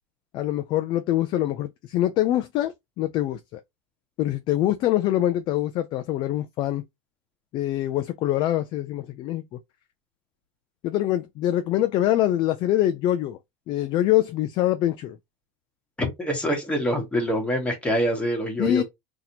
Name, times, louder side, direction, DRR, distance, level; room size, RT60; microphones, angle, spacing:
voice 1, 0.3-3.6 4.2-6.8 7.5-9.4 10.8-13.4 13.7-15.2 18.6-18.8, left 13 dB, 30° left, 0.4 m, -24 dB
voice 2, 16.0-18.8, equal, 10° left, 1.3 m, -25 dB
4.1 x 2.8 x 2.8 m
supercardioid pair, 165°, 15 cm